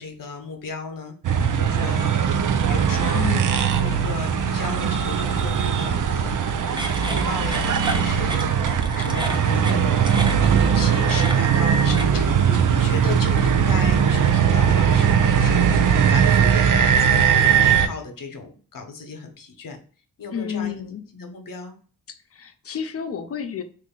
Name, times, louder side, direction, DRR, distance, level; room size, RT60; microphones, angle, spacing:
voice 1, 0.0-2.2 2.7-6.4 7.1-19.8 20.2-20.7 21.1-21.8, left 4 dB, 55° left, 4 dB, 0.9 m, -35 dB
sound 1, 1.2-17.9, right 7 dB, 50° right, 0.5 m, -19 dB
voice 2, 3.1-3.6 20.3-21.1 22.3-23.6, left 7 dB, 35° left, 7 dB, 0.6 m, -30 dB
sound 2, 6.7-13.6, right 1 dB, 10° right, 0.7 m, -35 dB
2.9 x 2.5 x 3.6 m, 0.42 s
supercardioid pair, 40°, 40 cm